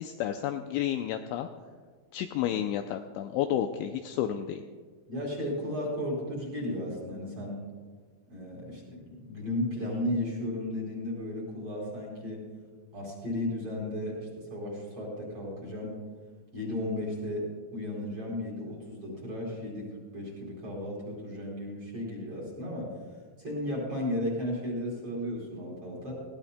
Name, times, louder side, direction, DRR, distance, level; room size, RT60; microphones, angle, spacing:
voice 1, 0.0-1.5 2.1-4.6, left 10 dB, 85° left, 6 dB, 2.7 m, -31 dB
voice 2, 5.1-7.6 8.3-12.4 12.9-16.0 16.5-19.9 20.1-22.9 23.4-26.1, left 1 dB, 30° right, -4 dB, 4.6 m, -34 dB
20.0 x 16.5 x 2.2 m, 1.5 s
omnidirectional pair, 5.8 m